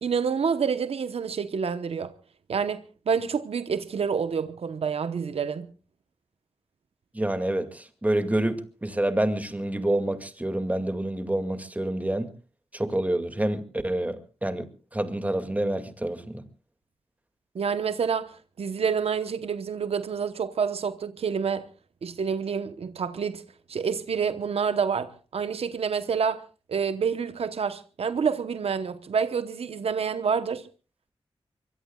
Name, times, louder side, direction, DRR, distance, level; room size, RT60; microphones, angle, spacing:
voice 1, 0.0-2.1 2.5-5.7 17.5-21.7 22.0-23.4 23.7-26.4 26.7-30.6, right 6 dB, 80° right, 1.0 m, -28 dB
voice 2, 7.1-12.3 12.7-14.7 14.9-16.4, right 1 dB, 15° right, 2.2 m, -27 dB
24.5 x 23.5 x 2.3 m
wide cardioid pair, 80°, 10 cm